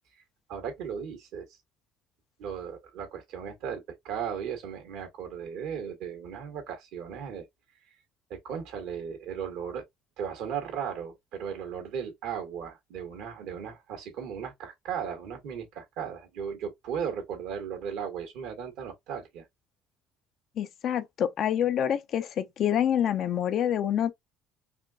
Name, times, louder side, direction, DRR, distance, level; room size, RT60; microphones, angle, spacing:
voice 1, 0.5-1.5 2.4-7.5 8.3-9.8 10.2-19.4, right 7 dB, 75° right, 1.6 m, -36 dB
voice 2, 20.6-24.1, left 10 dB, 60° left, 0.7 m, -27 dB
4.2 x 2.7 x 2.3 m
supercardioid pair, 80°, 0 cm